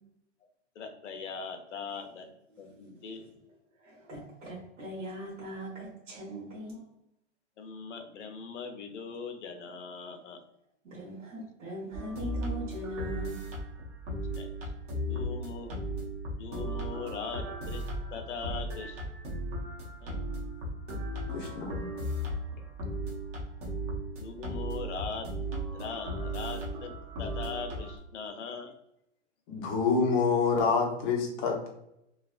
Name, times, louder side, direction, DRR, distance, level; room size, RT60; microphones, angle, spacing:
voice 1, 0.7-2.3 2.6-3.2 7.6-10.4 14.3-14.5 14.9-15.8 16.3-19.0 20.1-20.2 24.2-25.3 25.7-26.9 27.2-28.8, left 5 dB, 75° left, 5 dB, 0.7 m, -40 dB
voice 2, 3.8-6.8 10.8-13.4, equal, 80° right, -6 dB, 1.4 m, -40 dB
sound 1, 11.9-28.0, right 1 dB, 30° right, 0.7 m, -36 dB
voice 3, 21.3-21.9 29.5-31.7, left 5 dB, 20° left, 0 dB, 0.5 m, -27 dB
3.2 x 2.3 x 2.4 m, 0.81 s
hypercardioid pair, 145°, 36 cm